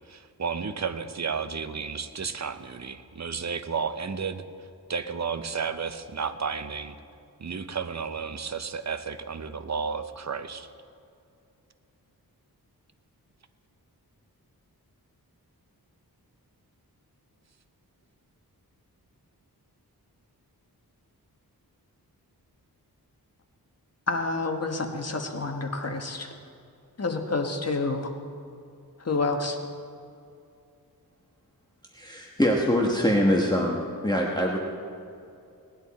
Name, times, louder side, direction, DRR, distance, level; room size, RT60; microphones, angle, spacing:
voice 1, 0.1-7.0 7.4-10.7, right 5 dB, 45° right, 10 dB, 0.7 m, -32 dB
voice 2, 24.1-26.3 27.0-28.1 29.0-29.6, left 3 dB, 40° left, 4 dB, 1.3 m, -28 dB
voice 3, 31.9-33.8 34.0-34.6, equal, 10° left, -1 dB, 1.3 m, -23 dB
18.5 x 11.0 x 4.2 m, 2.5 s
wide cardioid pair, 85°, 38 cm